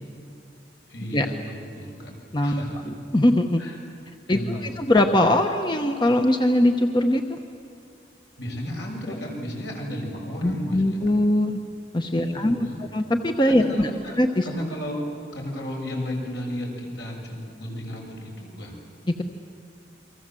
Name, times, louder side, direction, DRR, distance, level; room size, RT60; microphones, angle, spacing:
voice 1, 0.9-2.1 2.4-2.9 3.6-3.8 4.3-4.9 8.4-11.2 12.1-12.8 13.5-14.2 14.4-18.8, equal, 75° left, 0 dB, 7.0 m, -34 dB
voice 2, 2.3-3.6 4.3-7.4 10.4-11.6 11.9-13.9 14.2-14.5, left 1 dB, 25° left, 5 dB, 1.0 m, -21 dB
29.0 x 24.0 x 7.7 m, 2.5 s
head